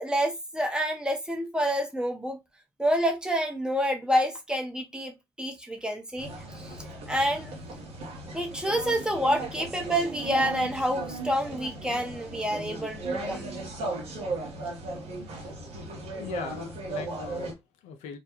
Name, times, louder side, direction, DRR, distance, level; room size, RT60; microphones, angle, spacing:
voice 1, 0.0-2.4 2.8-6.3 6.5-6.8 7.1-7.5 8.3-13.5, equal, 5° right, 0.8 m, -28 dB
sound 1, 6.2-17.5, right 2 dB, 60° right, 0.7 m, -36 dB
voice 2, 15.5-15.9 16.2-18.2, left 6 dB, 65° left, 0.4 m, -40 dB
2.2 x 2.1 x 2.8 m
hypercardioid pair, 50°, 12 cm